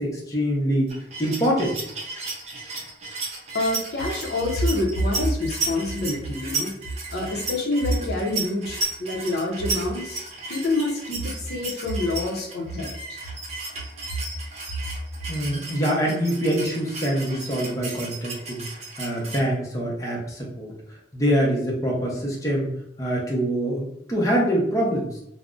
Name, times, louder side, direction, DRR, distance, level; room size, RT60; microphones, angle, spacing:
voice 1, 0.0-1.7 15.3-18.6 19.0-20.7 21.1-22.7 23.0-25.2, equal, 20° left, -3 dB, 0.6 m, -24 dB
sound 1, 0.9-19.4, right 3 dB, 40° right, 0.5 m, -34 dB
voice 2, 3.5-6.7 7.1-10.2 10.5-13.2, left 1 dB, 65° left, -1 dB, 0.6 m, -26 dB
2.4 x 2.0 x 3.6 m, 0.72 s
head